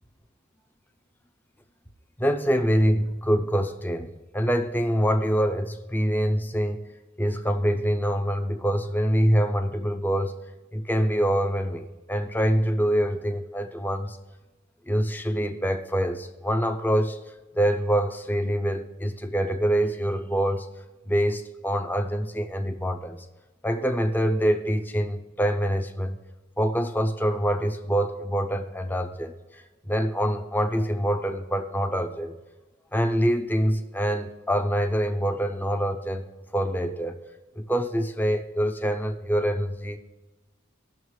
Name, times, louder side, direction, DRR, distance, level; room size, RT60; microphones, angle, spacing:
voice 1, 2.2-6.8 7.2-10.4 10.7-14.2 14.9-17.2 17.5-20.7 21.1-23.2 23.6-26.2 26.6-32.3 32.9-36.2 36.5-37.2 37.6-40.0, equal, 10° left, 6 dB, 0.6 m, -25 dB
18.0 x 6.4 x 3.2 m, 1.1 s
head